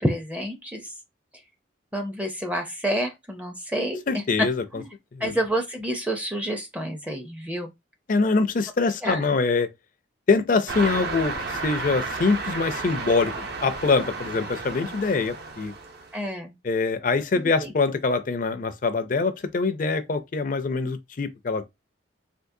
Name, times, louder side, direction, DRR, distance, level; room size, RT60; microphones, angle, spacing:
voice 1, 0.0-0.9 1.9-4.5 4.7-4.8 5.2-7.7 9.0-9.3 16.1-16.5 17.6-17.7, equal, 5° right, 0.5 m, -28 dB
voice 2, 4.1-4.8 5.1-5.3 8.1-9.7 10.3-15.7 16.6-21.6, left 4 dB, 45° left, 0.4 m, -24 dB
sound 1, 10.7-16.2, right 3 dB, 55° right, 0.7 m, -32 dB
3.6 x 2.5 x 2.6 m
head